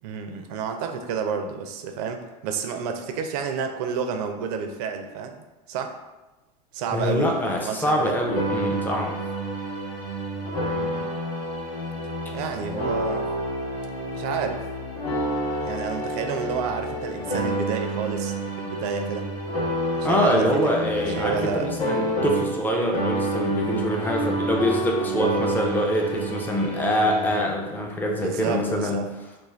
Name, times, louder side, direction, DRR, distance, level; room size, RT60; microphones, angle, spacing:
voice 1, 0.0-5.9 6.7-8.1 10.6-11.1 12.3-13.3 14.1-14.7 15.6-19.3 19.9-21.7 28.2-29.1, right 6 dB, 65° right, 6 dB, 0.4 m, -30 dB
voice 2, 6.9-9.2 20.0-29.1, equal, 10° left, 0 dB, 0.5 m, -24 dB
sound 1, 8.2-22.7 22.9-27.4, right 1 dB, 75° left, 1.0 m, -29 dB
2.5 x 2.2 x 3.1 m, 1.1 s
hypercardioid pair, 90°, 21 cm